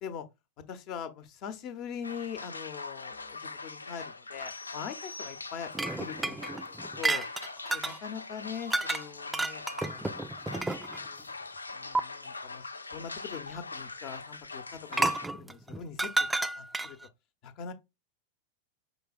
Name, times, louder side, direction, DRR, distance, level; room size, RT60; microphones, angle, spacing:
voice 1, 0.7-5.7 6.0-6.4 6.7-7.2 7.7-10.2 10.8-11.3 11.7-12.6 12.9-16.3 16.6-17.0 17.4-17.7, left 7 dB, 40° left, 0.7 m, -42 dB
sound 1, 2.0-15.3, left 3 dB, 80° left, 0.3 m, -42 dB
sound 2, 4.5-6.0, left 2 dB, 90° right, 0.4 m, -47 dB
sound 3, 5.7-8.0 8.7-9.0 9.3-11.1 11.9-12.0 14.9-17.1, right 2 dB, 10° right, 0.3 m, -31 dB
5.3 x 4.1 x 2.3 m
figure-of-eight pair, 90°, 0 cm